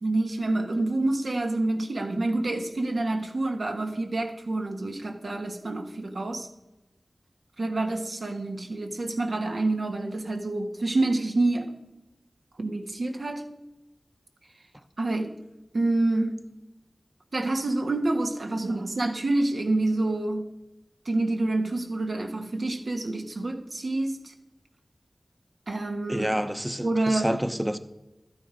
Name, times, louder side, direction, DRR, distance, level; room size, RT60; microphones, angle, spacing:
voice 1, 0.0-6.5 7.6-11.7 12.6-13.5 15.0-15.4 15.7-16.4 17.3-20.5 21.0-24.3 25.7-26.3 26.8-27.4, right 2 dB, 80° right, 4 dB, 1.5 m, -27 dB
voice 2, 26.1-27.8, equal, 10° right, 10 dB, 0.8 m, -28 dB
13.0 x 9.0 x 5.2 m, 0.95 s
wide cardioid pair, 65°, 0 cm